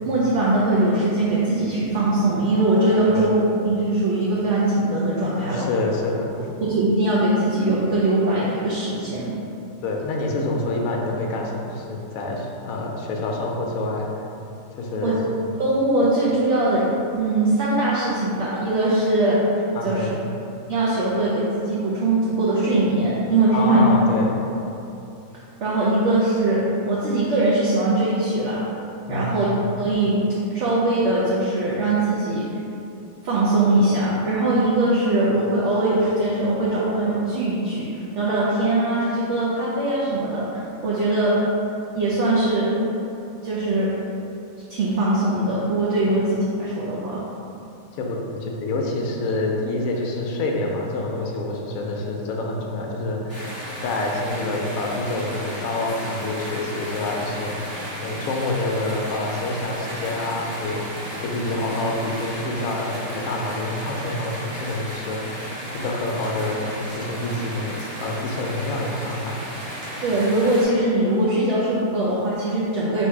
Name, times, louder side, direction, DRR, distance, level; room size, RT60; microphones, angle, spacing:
voice 1, 0.1-5.7 6.6-9.3 15.0-15.2 15.6-19.4 19.8-20.1 20.7-23.9 25.6-26.6 26.8-28.6 29.1-29.5 29.8-30.2 30.5-32.4 33.2-41.4 41.9-42.7 43.4-43.9 44.7-47.2 70.0-73.1, right 2 dB, 65° right, -7 dB, 0.7 m, -21 dB
voice 2, 5.3-6.4 9.8-14.1 14.8-15.2 19.7-20.2 23.5-24.4 29.1-29.5 47.9-53.5 53.8-57.5 58.0-65.4 65.7-69.4, left 2 dB, 70° left, 0 dB, 0.9 m, -27 dB
sound 1, 53.3-70.6, equal, 25° right, 0.6 m, -34 dB
3.2 x 2.8 x 4.5 m, 2.8 s
omnidirectional pair, 1.7 m